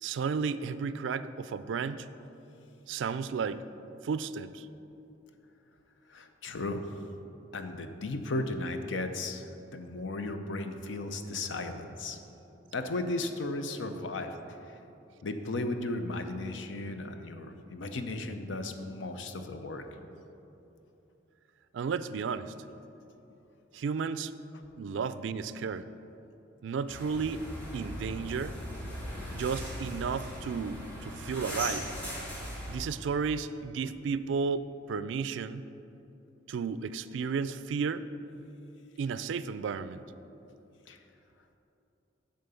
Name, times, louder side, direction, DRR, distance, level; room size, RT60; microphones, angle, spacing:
voice 1, 0.0-2.1 2.9-3.6 4.0-4.7 21.7-22.5 23.7-24.3 24.8-25.9 26.6-27.4 27.7-28.5 29.3-31.9 32.7-35.6 36.5-38.0 39.0-40.0, right 5 dB, 75° right, 13 dB, 0.3 m, -33 dB
voice 2, 6.1-6.8 7.5-12.2 12.7-14.6 15.2-19.8 40.9-41.0, left 2 dB, 75° left, 7 dB, 0.7 m, -35 dB
sound 1, 26.9-32.8, equal, 10° left, 2.1 m, -39 dB
10.5 x 3.9 x 6.9 m, 2.9 s
head